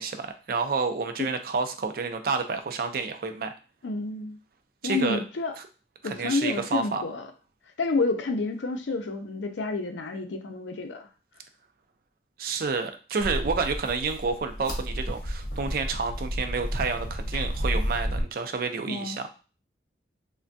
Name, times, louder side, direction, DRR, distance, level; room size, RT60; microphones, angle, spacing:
voice 1, 0.0-3.5 4.8-5.2 5.6-5.7 6.0-7.0 12.4-19.3, right 4 dB, 50° right, 7 dB, 0.4 m, -29 dB
voice 2, 3.8-4.4 4.8-5.5 6.0-7.3 7.8-11.1 18.9-19.2, left 3 dB, 80° left, 5 dB, 0.5 m, -29 dB
sound 1, 13.2-18.2, equal, 50° left, 0.8 m, -31 dB
3.3 x 2.2 x 2.6 m, 0.34 s
head